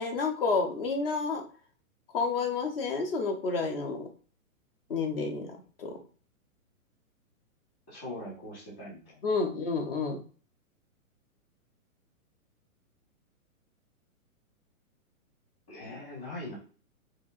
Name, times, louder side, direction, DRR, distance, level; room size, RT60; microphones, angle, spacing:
voice 1, 0.0-1.4 2.1-4.1 4.9-6.0 9.2-10.2, left 4 dB, 40° left, 4 dB, 0.8 m, -30 dB
voice 2, 7.9-9.4 15.7-16.6, left 1 dB, 15° left, -7 dB, 1.4 m, -41 dB
4.3 x 2.8 x 2.4 m, 0.39 s
hypercardioid pair, 175°, 43 cm